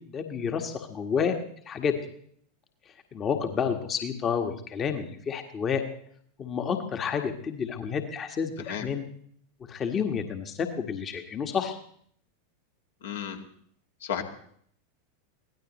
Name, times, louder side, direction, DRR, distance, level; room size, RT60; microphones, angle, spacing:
voice 1, 0.1-1.3 1.6-2.0 3.1-5.8 6.4-9.1 9.7-11.8, left 6 dB, 25° left, 5 dB, 1.6 m, -30 dB
voice 2, 13.0-13.4 14.0-14.2, left 8 dB, 65° left, 3 dB, 2.1 m, -33 dB
23.0 x 17.5 x 3.1 m, 0.64 s
figure-of-eight pair, 85°, 0 cm